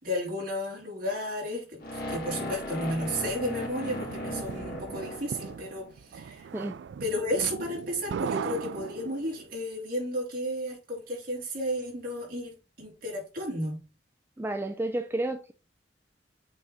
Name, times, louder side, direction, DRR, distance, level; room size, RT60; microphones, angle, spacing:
voice 1, 0.0-6.5 7.0-13.8, equal, 55° right, 3.7 m, -33 dB
sound 1, 1.8-5.9, equal, 60° left, 2.2 m, -37 dB
sound 2, 3.6-9.5, right 6 dB, 85° right, 0.3 m, -38 dB
voice 2, 14.4-15.5, right 1 dB, 15° right, 0.4 m, -31 dB
8.3 x 3.6 x 4.1 m
head